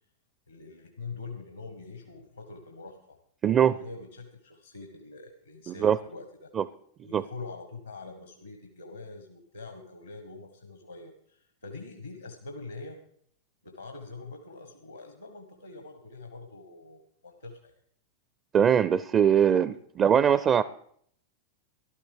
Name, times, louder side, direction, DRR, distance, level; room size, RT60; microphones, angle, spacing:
voice 1, 0.5-3.2 3.7-6.5 7.0-13.0 13.6-17.8 19.7-19.8, left 3 dB, 80° left, 6 dB, 1.4 m, -44 dB
voice 2, 3.4-3.8 5.7-6.0 6.5-6.6 7.1-7.2 18.5-20.6, right 8 dB, 25° right, 16 dB, 0.4 m, -22 dB
14.5 x 12.0 x 4.9 m, 0.64 s
figure-of-eight pair, 90°, 0 cm